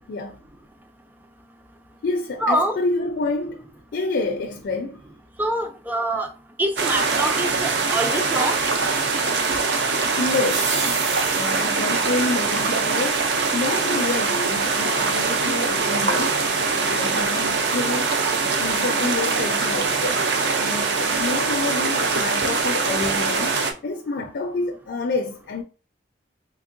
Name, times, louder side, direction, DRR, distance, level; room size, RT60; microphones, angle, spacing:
voice 1, 0.1-0.4 2.0-5.0 10.2-10.7 11.3-16.4 16.8-18.1 18.6-20.2 20.6-25.6, left 3 dB, 60° left, 0.4 m, -28 dB
voice 2, 2.4-2.8 5.4-6.3 6.6-8.6, right 1 dB, 10° right, 0.4 m, -24 dB
sound 1, 6.8-23.7, right 4 dB, 65° right, 0.5 m, -23 dB
sound 2, 9.7-11.9, right 3 dB, 85° right, 1.0 m, -31 dB
3.6 x 2.9 x 2.5 m
head